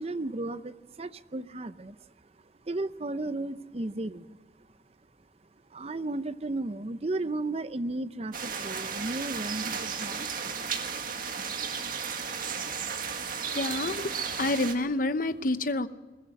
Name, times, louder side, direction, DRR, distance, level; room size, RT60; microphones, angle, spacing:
voice 1, 0.0-2.0 2.6-4.4 5.7-10.3, right 2 dB, 35° right, 14 dB, 0.7 m, -34 dB
sound 1, 8.3-14.8, right 6 dB, 50° right, 1.9 m, -34 dB
voice 2, 13.5-15.9, left 2 dB, 50° left, 12 dB, 0.9 m, -28 dB
21.5 x 17.0 x 9.0 m, 1.2 s
head